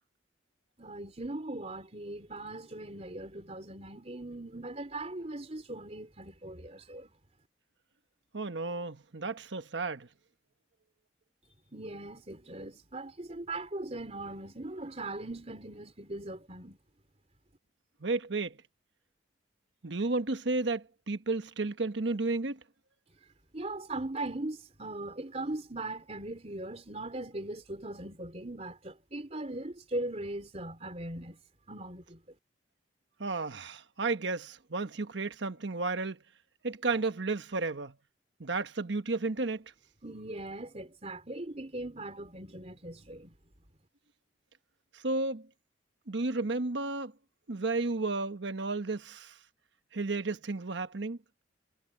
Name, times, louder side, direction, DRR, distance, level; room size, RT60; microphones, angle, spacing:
voice 1, 0.8-7.1 11.7-16.8 23.5-31.4 31.7-32.2 40.0-43.3, right 2 dB, 35° right, 3.8 m, -39 dB
voice 2, 8.3-10.1 18.0-18.6 19.8-22.6 33.2-36.2 36.6-37.9 38.4-39.6 44.9-45.5 46.1-47.1 47.5-49.3 49.9-51.2, right 3 dB, 75° right, 1.1 m, -32 dB
head